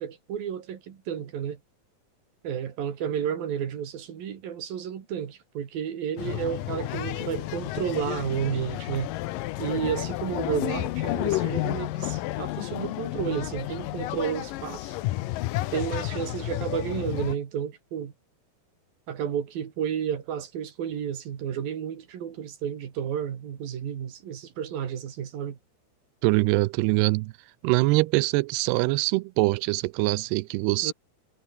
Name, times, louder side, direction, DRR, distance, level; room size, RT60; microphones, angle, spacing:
voice 1, 0.0-1.6 2.4-9.1 9.6-15.0 15.7-18.1 19.1-25.6 30.8-30.9, right 8 dB, 65° right, 4.0 m, -32 dB
sound 1, 6.2-17.4, left 16 dB, 75° left, 2.2 m, -31 dB
voice 2, 26.2-27.3 27.6-30.9, right 22 dB, 85° right, 2.6 m, -23 dB
omnidirectional pair, 4.7 m